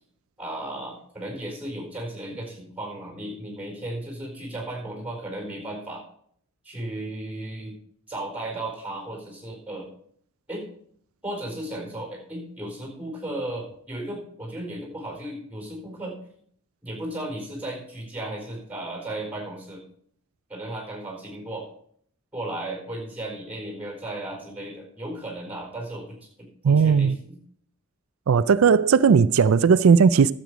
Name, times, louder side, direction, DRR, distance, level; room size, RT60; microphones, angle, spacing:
voice 1, 0.4-6.0 6.6-7.8 8.1-9.9 10.5-10.7 11.2-16.2 16.8-19.9 20.5-21.7 22.3-26.2 26.6-27.4, right 1 dB, 5° right, 4.4 m, -35 dB
voice 2, 26.6-27.2 28.3-30.3, right 6 dB, 85° right, 0.4 m, -17 dB
12.0 x 7.8 x 5.0 m
head